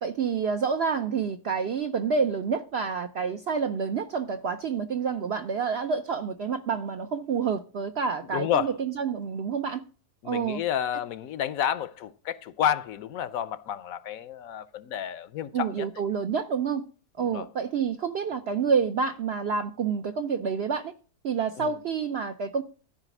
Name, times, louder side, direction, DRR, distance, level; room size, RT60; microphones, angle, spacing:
voice 1, 0.0-9.8 10.2-10.6 15.5-16.8 17.2-20.9 21.2-22.6, right 6 dB, 65° right, 0.6 m, -28 dB
voice 2, 8.3-8.7 10.2-15.9 17.2-17.5 21.6-21.8, left 9 dB, 70° left, 1.0 m, -30 dB
13.0 x 4.9 x 6.0 m
omnidirectional pair, 1.6 m